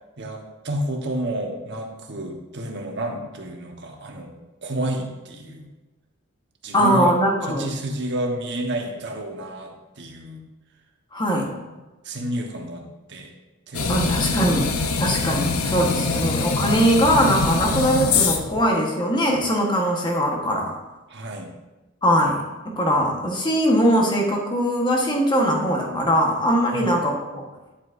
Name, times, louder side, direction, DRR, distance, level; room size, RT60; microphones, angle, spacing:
voice 1, 0.2-4.3 4.6-5.7 6.6-7.1 7.4-10.4 11.4-11.5 12.0-13.3 13.7-14.1 21.1-21.5 26.7-26.9, right 1 dB, 55° right, 2 dB, 1.2 m, -30 dB
voice 2, 6.7-7.7 11.1-11.5 13.9-14.7 15.0-20.8 22.0-27.4, equal, 20° left, 0 dB, 1.3 m, -21 dB
sound 1, 13.7-18.6, left 4 dB, 90° left, 0.8 m, -23 dB
10.5 x 8.0 x 2.6 m, 1.1 s
head